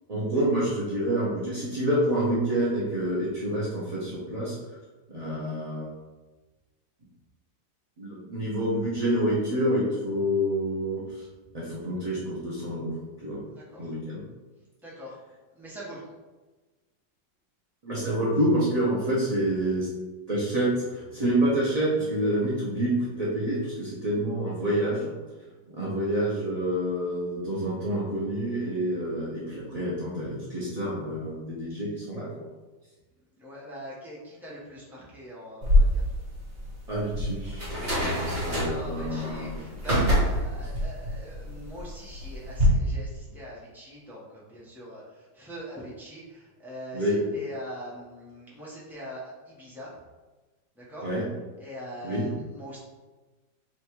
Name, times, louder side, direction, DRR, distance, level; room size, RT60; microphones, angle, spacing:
voice 1, 0.1-4.6 5.1-5.9 8.0-11.2 11.5-12.9 13.2-13.4 13.8-14.2 17.8-19.9 20.3-25.1 25.7-32.5 36.9-37.7 38.0-39.6 46.9-47.2 51.0-51.2 52.0-52.3, right 1 dB, 85° right, -8 dB, 0.3 m, -28 dB
voice 2, 13.5-13.9 14.8-15.2 15.5-16.1 33.4-36.1 38.0-50.0 50.7-51.1 51.6-52.8, equal, ahead, -7 dB, 0.7 m, -42 dB
sound 1, 35.6-42.6, equal, 35° right, 1.3 m, -27 dB
4.2 x 2.4 x 4.4 m, 1.2 s
omnidirectional pair, 2.1 m